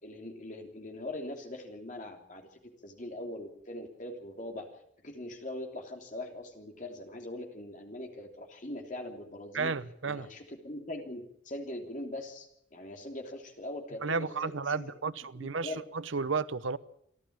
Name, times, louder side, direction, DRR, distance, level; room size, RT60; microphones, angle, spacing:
voice 1, 0.0-4.7 5.0-9.7 10.0-14.9 15.3-15.8, left 1 dB, 40° left, 3.2 m, -41 dB
voice 2, 9.5-10.3 14.0-16.8, right 4 dB, 80° right, 0.8 m, -33 dB
27.5 x 11.5 x 8.7 m
head